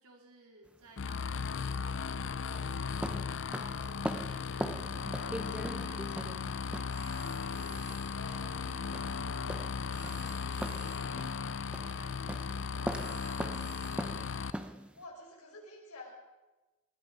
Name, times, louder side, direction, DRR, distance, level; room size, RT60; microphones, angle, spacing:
voice 1, 0.0-8.0 8.6-11.4 11.8-13.3, right 2 dB, 80° right, 0 dB, 3.7 m, -58 dB
sound 1, 0.7-15.0, equal, 5° right, 0.7 m, -42 dB
sound 2, 1.0-14.5, left 5 dB, 55° left, 0.5 m, -36 dB
Telephone, 6.7-14.6, right 2 dB, 55° right, 6.4 m, -55 dB
voice 2, 8.0-8.7 9.4-9.6 15.0-16.1, left 2 dB, 80° left, 0 dB, 4.7 m, -49 dB
20.0 x 14.0 x 4.9 m, 1.1 s
head